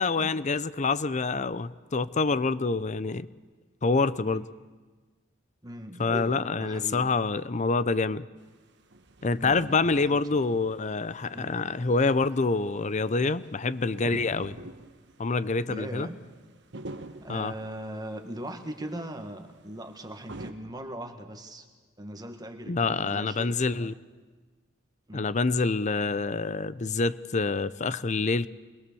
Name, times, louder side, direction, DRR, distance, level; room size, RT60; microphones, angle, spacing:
voice 1, 0.0-3.3 3.8-4.4 6.0-8.3 9.2-14.6 15.2-16.1 17.3-17.5 22.7-23.9 25.1-28.5, left 3 dB, 40° left, 16 dB, 0.6 m, -26 dB
voice 2, 5.6-7.1 9.4-10.4 11.3-11.5 15.7-16.2 17.2-21.7 22.0-23.9 25.1-25.2, right 1 dB, 20° right, 6 dB, 1.9 m, -40 dB
sound 1, 8.4-20.5, right 2 dB, 65° right, 1.5 m, -47 dB
24.5 x 21.0 x 7.0 m, 1.3 s
head